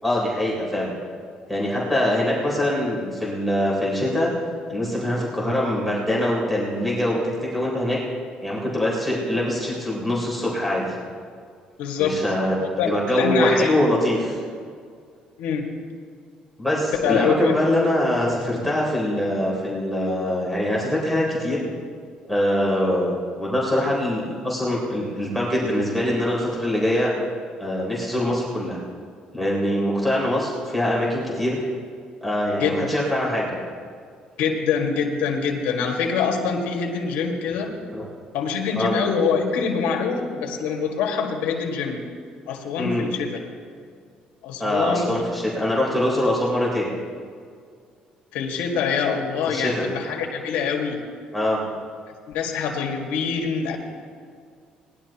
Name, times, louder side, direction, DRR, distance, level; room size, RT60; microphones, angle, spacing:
voice 1, 0.0-0.9 1.5-4.3 4.7-8.0 8.4-11.0 12.0-12.5 12.9-14.4 16.6-21.7 22.3-27.1 27.6-28.8 29.3-31.6 32.2-33.6 37.9-38.1 38.8-38.9 42.8-43.0 44.6-46.9 49.5-49.9 51.3-51.6, left 1 dB, ahead, -5 dB, 3.8 m, -23 dB
voice 2, 11.8-12.2 12.6-13.7 15.4-15.7 17.0-17.6 32.6-32.9 34.4-37.8 38.3-42.0 42.5-43.4 44.4-45.1 48.3-51.0 52.3-53.8, left 6 dB, 85° left, 1 dB, 1.9 m, -25 dB
19.5 x 11.5 x 3.0 m, 2.1 s
cardioid pair, 100°, 3 cm